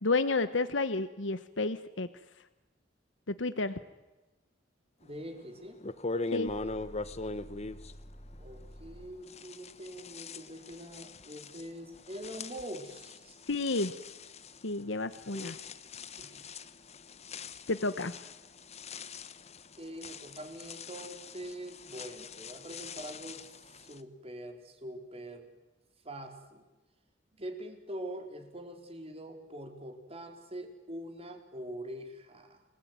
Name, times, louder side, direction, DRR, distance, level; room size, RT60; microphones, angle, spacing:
voice 1, 0.0-2.1 3.4-3.8 6.3-6.5 13.5-13.9 14.6-15.6 17.7-18.1, left 3 dB, 75° left, 12 dB, 1.2 m, -30 dB
voice 2, 5.0-5.8 8.4-13.4 15.3-15.6 16.2-16.3 19.8-23.5 23.8-25.5 26.0-26.7 27.3-32.6, right 1 dB, 35° right, 5 dB, 4.2 m, -44 dB
sound 1, 5.3-5.4 5.8-8.9 9.3-24.0, left 3 dB, 35° left, 1.2 m, -42 dB
sound 2, 6.5-9.3, equal, 15° left, 2.9 m, -50 dB
29.5 x 21.0 x 9.6 m, 1.1 s
head